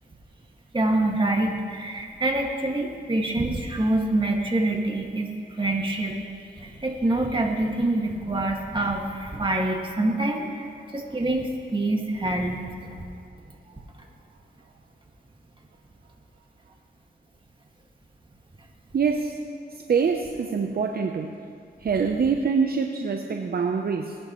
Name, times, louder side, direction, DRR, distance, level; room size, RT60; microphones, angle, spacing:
voice 1, 0.7-5.3 5.6-6.2 6.6-12.9 13.7-13.8, right 2 dB, 25° right, 0 dB, 2.0 m, -26 dB
voice 2, 18.9-19.4 19.9-21.3 21.8-24.2, right 5 dB, 60° right, 3 dB, 0.7 m, -24 dB
20.0 x 11.0 x 3.1 m, 2.2 s
cardioid pair, 65°, 18 cm